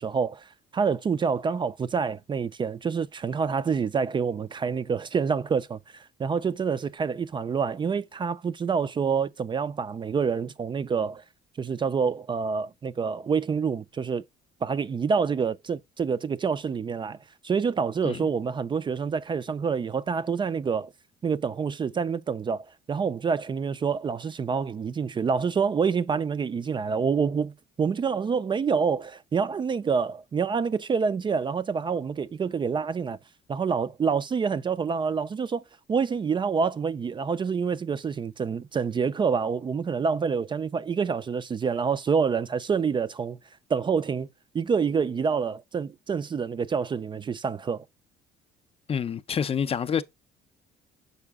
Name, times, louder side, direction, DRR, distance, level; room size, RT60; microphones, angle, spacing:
voice 1, 0.0-11.2 11.6-14.2 14.6-17.2 17.4-20.9 21.2-33.2 33.5-35.6 35.9-43.4 43.7-44.3 44.5-47.8, right 6 dB, 30° right, 0.4 m, -27 dB
voice 2, 48.9-50.0, left 7 dB, 35° left, 0.5 m, -27 dB
6.8 x 4.8 x 3.6 m
cardioid pair, 110°, 17 cm